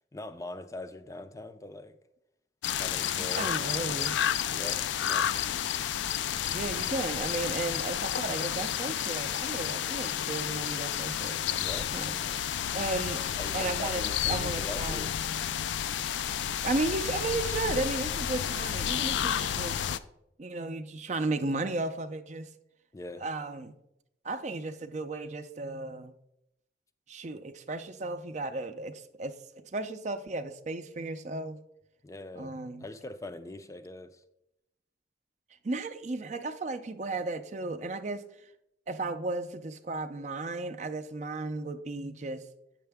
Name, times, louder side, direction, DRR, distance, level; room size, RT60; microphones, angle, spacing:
voice 1, 0.1-2.0 2.7-3.8 4.5-5.5 11.6-12.5 13.4-15.9 22.9-23.2 32.0-34.2, left 2 dB, 20° left, 10 dB, 0.4 m, -43 dB
sound 1, 2.6-20.0, left 9 dB, 85° left, 0.3 m, -31 dB
voice 2, 3.2-4.2 6.5-13.2 13.5-15.1 16.6-19.7 20.4-22.5 23.2-23.7 24.2-26.1 27.1-29.3 29.7-31.6 32.4-32.8 35.6-38.2 38.9-42.4, right 2 dB, 40° right, 10 dB, 0.5 m, -34 dB
8.7 x 6.6 x 3.5 m, 0.82 s
head